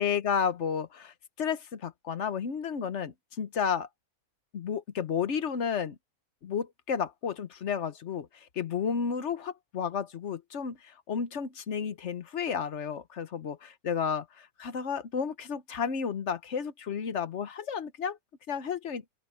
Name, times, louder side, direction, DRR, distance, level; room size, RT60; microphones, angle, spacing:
voice 1, 0.0-3.9 4.5-6.0 6.4-8.3 8.6-18.2 18.5-19.0, left 7 dB, 55° left, 1.2 m, -32 dB
open air
omnidirectional pair, 1.5 m